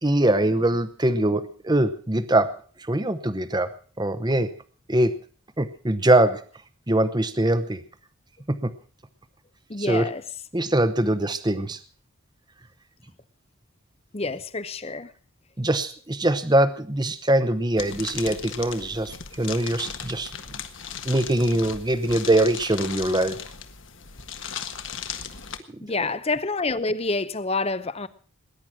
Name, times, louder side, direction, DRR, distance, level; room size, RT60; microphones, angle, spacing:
voice 1, 0.0-3.7 4.0-4.5 4.9-5.2 5.6-6.4 6.9-7.8 8.5-8.7 9.8-10.1 10.5-11.8 15.6-20.3 21.0-23.4, right 1 dB, 20° right, 0.9 m, -22 dB
voice 2, 9.7-10.2 14.1-15.1 25.8-28.1, left 3 dB, 30° left, 0.7 m, -27 dB
sound 1, 17.8-25.6, left 7 dB, 60° left, 1.6 m, -37 dB
20.5 x 10.5 x 6.0 m
head